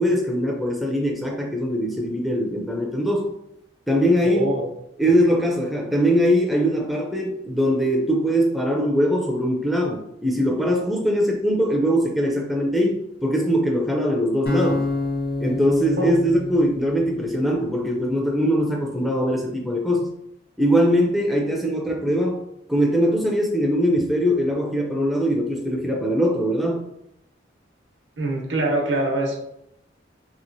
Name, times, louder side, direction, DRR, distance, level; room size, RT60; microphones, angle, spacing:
voice 1, 0.0-3.3 3.9-4.5 5.0-14.8 15.4-20.1 20.6-22.4 22.7-26.8, equal, ahead, -1 dB, 0.3 m, -21 dB
voice 2, 4.2-4.7 16.0-16.1 28.2-29.4, right 1 dB, 80° right, 0 dB, 0.8 m, -24 dB
sound 1, 14.5-17.6, left 2 dB, 50° left, 0.6 m, -28 dB
3.0 x 2.8 x 2.6 m, 0.79 s
head